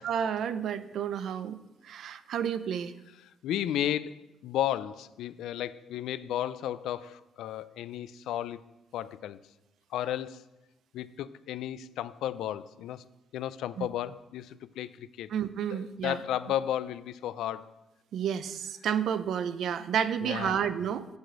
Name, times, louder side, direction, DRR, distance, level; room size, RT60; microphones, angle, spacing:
voice 1, 0.0-1.6 1.8-2.9 13.8-13.9 15.3-16.2 18.1-21.1, right 8 dB, 60° right, 13 dB, 0.5 m, -31 dB
voice 2, 3.4-8.6 8.9-9.4 9.9-10.4 10.9-13.0 13.3-15.3 15.7-17.7 20.2-20.6, left 11 dB, 85° left, 16 dB, 0.4 m, -33 dB
8.1 x 5.0 x 7.5 m, 0.99 s
cardioid pair, 170°, 0 cm